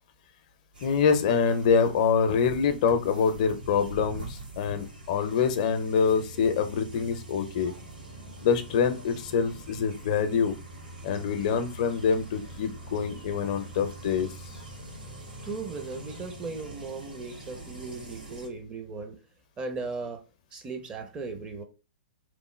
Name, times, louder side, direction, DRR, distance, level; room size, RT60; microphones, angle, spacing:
sound 1, 0.7-18.5, right 1 dB, 80° right, 1.5 m, -43 dB
voice 1, 0.8-7.7 8.4-10.5 11.0-14.3, left 6 dB, 50° left, 0.5 m, -25 dB
voice 2, 15.4-19.2 19.6-20.2 20.5-21.6, right 4 dB, 20° right, 0.6 m, -37 dB
3.0 x 2.1 x 3.1 m
hypercardioid pair, 120°, 5 cm